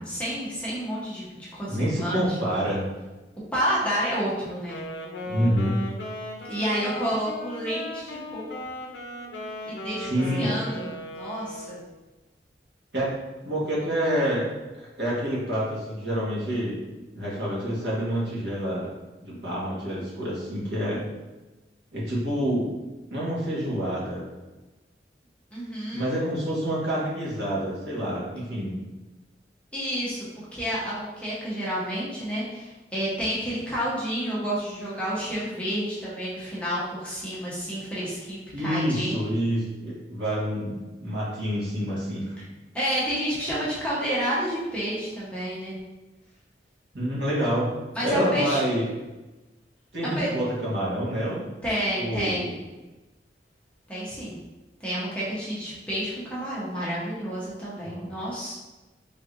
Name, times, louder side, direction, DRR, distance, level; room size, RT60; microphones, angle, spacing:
voice 1, 0.1-2.2 3.5-4.8 6.5-8.4 9.7-11.8 25.5-26.1 29.7-39.2 42.7-45.7 47.9-48.6 50.2-50.3 51.6-52.5 53.9-54.4 54.8-58.5, equal, 5° left, -8 dB, 0.9 m, -30 dB
voice 2, 1.7-2.9 5.2-5.8 10.0-10.6 12.9-13.1 13.4-14.5 14.8-16.8 17.1-18.9 19.2-21.0 21.9-22.7 23.1-24.3 25.9-28.8 38.5-42.3 46.9-47.7 48.0-48.9 49.9-51.5 52.0-52.5 57.8-58.1, equal, 70° right, -7 dB, 1.3 m, -27 dB
Wind instrument woodwind instrument, 4.6-11.9, left 1 dB, 75° left, 0.5 m, -37 dB
3.7 x 3.2 x 2.5 m, 1.1 s
head